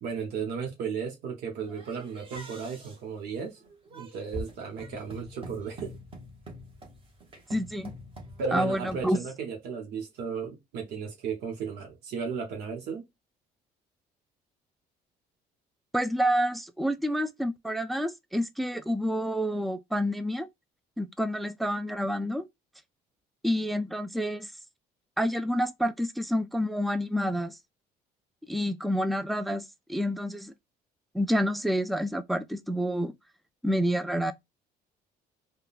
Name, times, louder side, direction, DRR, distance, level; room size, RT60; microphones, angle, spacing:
voice 1, 0.0-3.6 3.9-6.0 8.4-13.0, right 6 dB, 75° right, 1.1 m, -35 dB
sound 1, 1.7-9.1, equal, 30° right, 1.3 m, -45 dB
voice 2, 7.5-7.9 8.5-9.2 15.9-20.5 21.0-22.5 23.4-24.5 25.2-27.6 28.5-30.5 31.1-33.1 33.6-34.3, equal, ahead, 0.3 m, -28 dB
3.6 x 2.3 x 2.4 m
cardioid pair, 110°, 17 cm